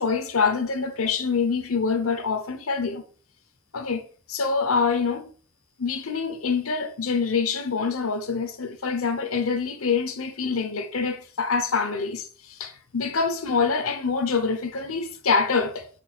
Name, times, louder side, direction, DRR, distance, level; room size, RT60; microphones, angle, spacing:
voice 1, 0.0-3.0 3.7-5.3 5.8-15.9, left 5 dB, 90° left, 1.0 m, -25 dB
6.0 x 4.5 x 4.4 m
head